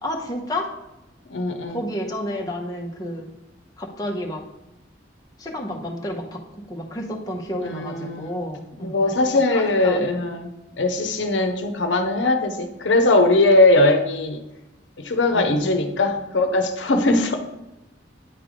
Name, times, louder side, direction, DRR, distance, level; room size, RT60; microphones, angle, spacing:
voice 1, 0.0-0.7 1.7-3.3 3.8-4.4 5.4-6.4 6.7-9.2 9.5-10.1 15.3-15.9, left 1 dB, 20° left, -1 dB, 0.9 m, -30 dB
voice 2, 1.3-1.8 7.6-8.4 8.8-10.5 10.8-14.4 15.0-17.5, left 2 dB, 85° left, 6 dB, 0.7 m, -20 dB
9.2 x 3.3 x 5.1 m, 0.94 s
head